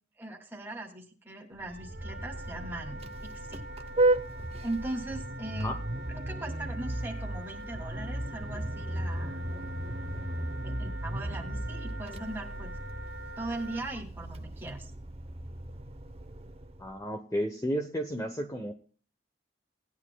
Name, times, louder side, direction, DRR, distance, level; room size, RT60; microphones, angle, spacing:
voice 1, 0.2-3.0 3.3-3.6 4.6-5.7 6.1-9.4 10.6-12.7 13.4-14.9, right 2 dB, 10° right, 0 dB, 2.6 m, -39 dB
Vehicle horn car horn honking, 1.6-17.0, right 1 dB, 35° right, 0.9 m, -35 dB
Wind instrument woodwind instrument, 1.6-13.8, right 1 dB, 65° right, 0.9 m, -46 dB
voice 2, 16.8-18.7, equal, 15° left, 4 dB, 0.9 m, -32 dB
19.0 x 10.5 x 2.3 m, 0.41 s
head